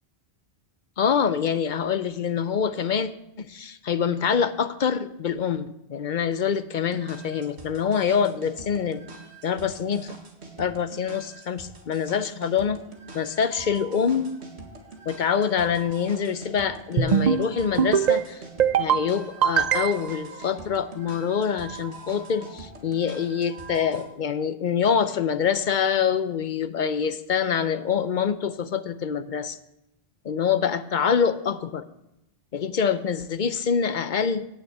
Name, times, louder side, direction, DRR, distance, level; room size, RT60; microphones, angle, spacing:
voice 1, 1.0-3.1 3.4-9.0 9.4-10.2 10.6-12.8 13.1-14.3 15.1-18.4 18.8-29.6 30.2-31.8 32.5-34.5, left 7 dB, 55° left, 12 dB, 0.7 m, -25 dB
sound 1, 6.8-24.0, right 4 dB, 85° right, 2.0 m, -44 dB
sound 2, 17.0-17.4 17.8-18.2 18.6-19.0 19.4-20.2, right 8 dB, 50° right, 0.6 m, -21 dB
11.0 x 6.2 x 8.6 m, 0.86 s
omnidirectional pair, 1.1 m